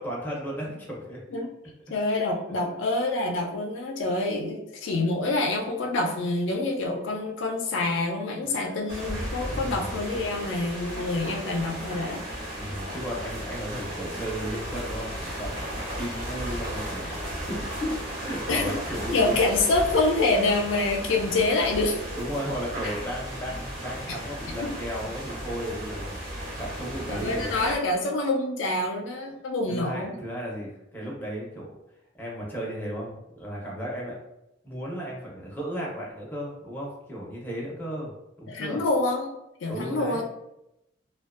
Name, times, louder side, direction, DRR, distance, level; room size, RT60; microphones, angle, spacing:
voice 1, 0.0-1.2 2.5-2.6 8.5-8.8 9.5-9.8 12.6-15.5 16.0-19.4 22.1-26.1 26.6-27.5 29.7-31.7 32.2-34.2 34.6-38.1 38.4-38.8 39.7-40.2, equal, 10° left, -4 dB, 0.6 m, -34 dB
voice 2, 1.9-12.2 18.5-18.7 19.1-22.0 22.8-22.9 24.6-24.7 27.1-30.1 38.5-40.2, left 2 dB, 75° left, 2 dB, 0.4 m, -26 dB
sound 1, 8.9-27.8, equal, 50° right, 1.1 m, -35 dB
2.5 x 2.2 x 2.4 m, 0.86 s
head